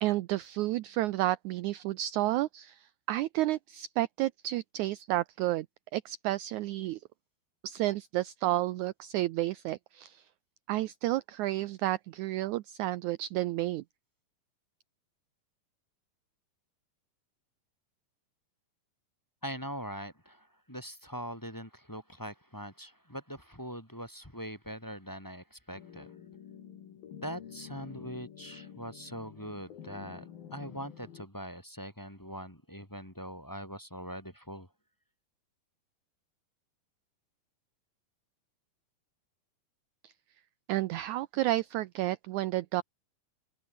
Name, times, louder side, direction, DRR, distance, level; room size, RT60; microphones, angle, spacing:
voice 1, 0.0-5.7 5.9-7.0 7.6-10.3 10.7-13.8 40.0-40.1 40.7-42.8, right 16 dB, 80° right, 1.8 m, -31 dB
voice 2, 19.4-26.1 27.2-34.7, equal, 5° left, 3.8 m, -42 dB
sound 1, 25.7-31.3, left 9 dB, 85° left, 4.3 m, -49 dB
open air
omnidirectional pair, 4.1 m